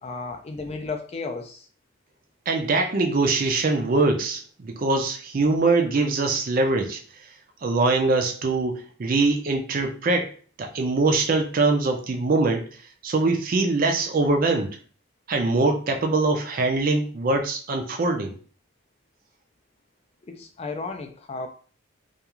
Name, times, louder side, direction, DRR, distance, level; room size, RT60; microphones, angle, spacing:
voice 1, 0.0-1.7 20.2-21.5, left 3 dB, 30° left, 5 dB, 0.3 m, -34 dB
voice 2, 2.5-7.0 7.6-12.7 13.0-14.8 15.3-18.4, right 3 dB, 40° right, 4 dB, 0.4 m, -23 dB
2.4 x 2.3 x 2.9 m, 0.40 s
head